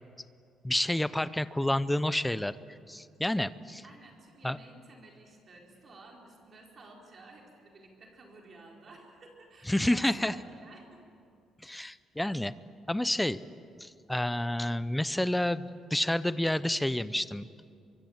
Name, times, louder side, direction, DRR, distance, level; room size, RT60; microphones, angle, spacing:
voice 1, 0.6-2.6 2.9-3.8 4.4-4.6 9.7-10.3 11.6-12.5 12.9-13.4 13.8-17.5, left 1 dB, 5° left, 15 dB, 0.5 m, -29 dB
voice 2, 3.8-11.0, right 2 dB, 30° right, 0 dB, 4.2 m, -53 dB
24.0 x 24.0 x 7.9 m, 2.4 s
cardioid pair, 175°, 0 cm